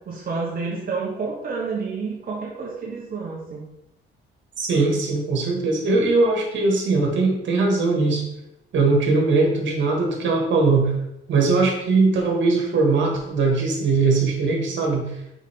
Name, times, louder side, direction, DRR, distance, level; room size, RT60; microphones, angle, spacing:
voice 1, 0.1-3.6, right 4 dB, 45° right, -3 dB, 1.2 m, -29 dB
voice 2, 4.6-8.2 8.7-11.0 11.3-15.0, right 3 dB, 70° right, 1 dB, 2.1 m, -20 dB
6.2 x 5.3 x 3.7 m, 0.86 s
cardioid pair, 90°, 20 cm